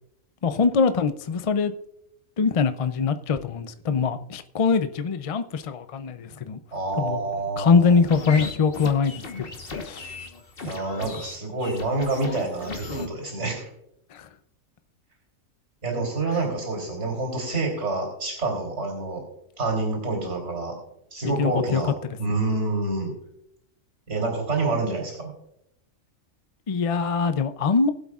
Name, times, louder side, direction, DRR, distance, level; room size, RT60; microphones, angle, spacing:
voice 1, 0.4-1.7 2.4-6.6 7.0-7.2 7.6-9.5 9.8-10.0 14.1-14.2 21.4-21.8 26.7-27.9, left 5 dB, 65° left, 10 dB, 0.3 m, -23 dB
voice 2, 6.7-8.0 10.6-13.7 15.8-19.2 19.6-20.7 21.1-23.1 24.1-25.3, right 2 dB, 55° right, 0 dB, 3.8 m, -27 dB
sound 1, 7.8-13.1, left 3 dB, 45° left, 1.4 m, -36 dB
21.5 x 8.0 x 2.4 m, 0.78 s
omnidirectional pair, 1.5 m